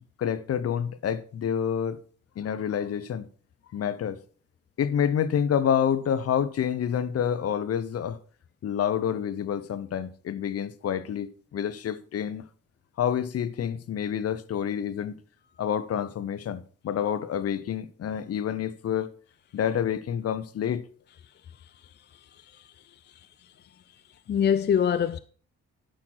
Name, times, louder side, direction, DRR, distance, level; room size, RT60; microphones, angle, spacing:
voice 1, 0.2-2.0 2.4-3.3 3.7-4.2 4.8-8.2 8.6-12.4 13.0-15.2 15.6-19.1 19.5-20.8, left 8 dB, 50° left, 0.8 m, -28 dB
voice 2, 22.4-22.7 24.3-25.2, left 8 dB, 35° left, 0.4 m, -24 dB
11.5 x 6.2 x 4.5 m
cardioid pair, 90°, 30 cm